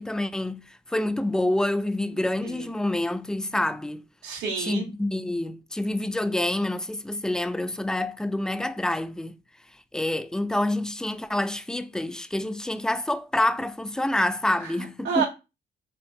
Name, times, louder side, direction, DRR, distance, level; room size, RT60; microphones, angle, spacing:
voice 1, 0.0-4.0 4.6-9.4 9.9-15.2, left 1 dB, 5° left, 0.3 m, -27 dB
voice 2, 4.2-4.9 14.6-15.3, right 6 dB, 85° right, 1.4 m, -30 dB
4.5 x 3.0 x 2.7 m
cardioid pair, 90°, 20 cm